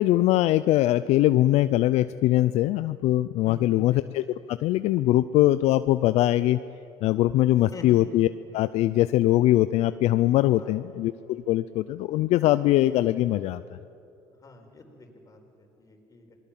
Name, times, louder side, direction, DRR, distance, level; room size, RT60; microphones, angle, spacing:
voice 1, 0.0-4.2 4.5-6.6 7.0-8.3 8.5-13.8, left 15 dB, 65° left, 13 dB, 0.5 m, -22 dB
voice 2, 3.4-4.0 7.7-8.0 10.6-10.9 14.4-16.4, left 2 dB, 30° left, 3 dB, 4.5 m, -45 dB
27.0 x 20.0 x 7.4 m, 2.7 s
supercardioid pair, 90°, 12 cm